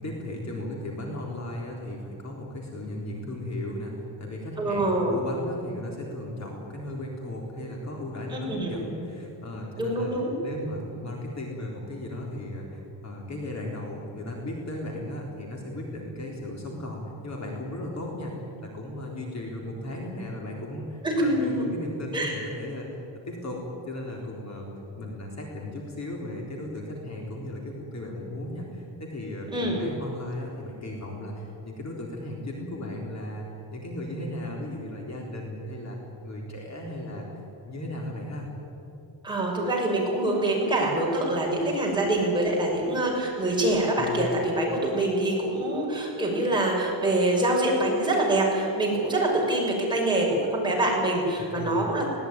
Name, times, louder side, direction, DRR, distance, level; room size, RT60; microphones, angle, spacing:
voice 1, 0.0-10.1 10.4-18.3 18.6-23.6 23.9-24.7 24.9-33.4 33.7-36.0 36.2-37.3 37.6-38.5 44.0-44.4 51.6-51.9, left 1 dB, 35° left, -1 dB, 3.8 m, -36 dB
voice 2, 4.6-5.1 8.3-8.8 9.8-10.3 21.0-21.7 22.1-22.3 29.5-29.8 39.2-52.1, right 1 dB, 10° right, -3 dB, 6.3 m, -25 dB
21.0 x 18.0 x 9.7 m, 2.9 s
cardioid pair, 150°, 48 cm